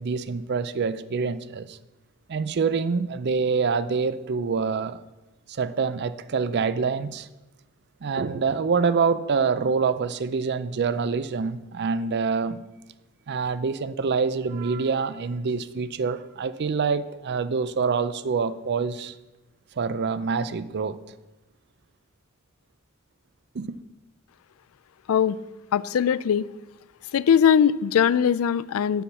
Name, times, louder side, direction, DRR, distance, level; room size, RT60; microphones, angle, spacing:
voice 1, 0.0-1.8 2.3-5.0 5.5-7.3 8.0-12.6 13.3-19.1 19.8-21.0 23.5-23.8, right 5 dB, 50° right, 0.4 m, -26 dB
voice 2, 25.7-26.4 27.1-29.0, left 8 dB, 75° left, 0.4 m, -20 dB
6.9 x 6.4 x 7.2 m
head